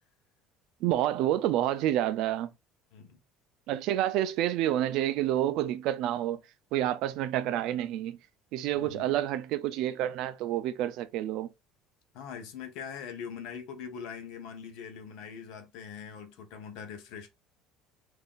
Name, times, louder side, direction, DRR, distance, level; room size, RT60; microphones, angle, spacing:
voice 1, 0.8-2.5 3.7-6.4 6.7-8.2 8.5-11.5, right 12 dB, 55° right, 0.3 m, -28 dB
voice 2, 8.7-9.2 12.1-17.3, left 7 dB, 65° left, 0.7 m, -42 dB
3.6 x 2.6 x 2.3 m
cardioid pair, 180°, 0 cm